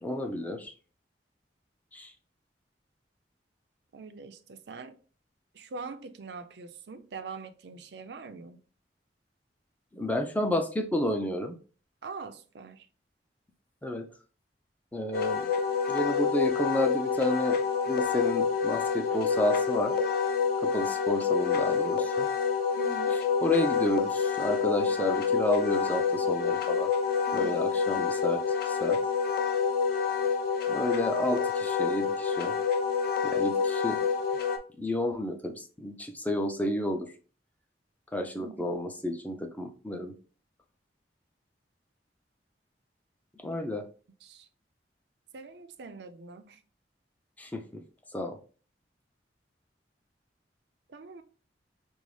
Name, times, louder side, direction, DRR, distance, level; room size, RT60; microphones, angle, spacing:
voice 1, 0.0-0.7 1.9-2.1 9.9-11.6 13.8-14.1 14.9-15.5 15.9-17.6 17.9-19.9 20.6-22.3 23.4-26.9 27.3-29.0 30.7-32.5 33.2-34.0 34.8-37.1 38.1-40.1 43.4-43.8 47.4-47.8 48.1-48.4, left 1 dB, 10° left, 0.5 m, -31 dB
voice 2, 3.9-5.0 5.5-8.6 12.0-12.9 22.8-23.2 27.3-27.5 38.4-38.6 44.2-44.5 45.3-46.6 50.9-51.2, right 4 dB, 65° right, 0.5 m, -43 dB
Wind instrument woodwind instrument, 15.1-34.6, left 6 dB, 60° left, 0.5 m, -28 dB
5.2 x 2.0 x 3.1 m
head